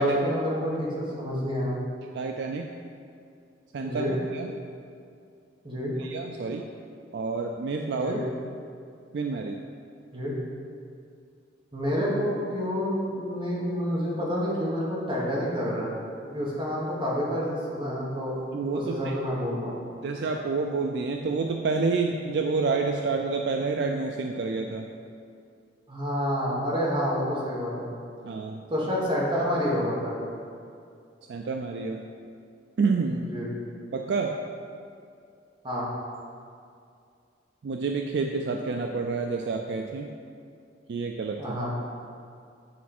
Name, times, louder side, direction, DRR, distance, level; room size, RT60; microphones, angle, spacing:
voice 1, 0.0-1.7 3.8-4.1 5.6-5.9 8.0-8.2 10.1-10.3 11.7-15.9 16.2-18.4 18.7-19.8 25.9-27.9 28.7-30.1 33.3-33.5 35.6-35.9 41.4-41.7, equal, 25° right, -6 dB, 1.5 m, -28 dB
voice 2, 2.1-2.7 3.7-4.0 4.3-4.5 6.0-6.7 7.1-8.2 9.1-9.6 18.5-19.2 20.0-24.9 28.2-28.6 31.3-32.0 32.8-33.3 33.9-34.4 37.6-40.1 40.9-41.6, right 4 dB, 60° right, 3 dB, 0.4 m, -28 dB
8.5 x 4.1 x 4.3 m, 2.4 s
head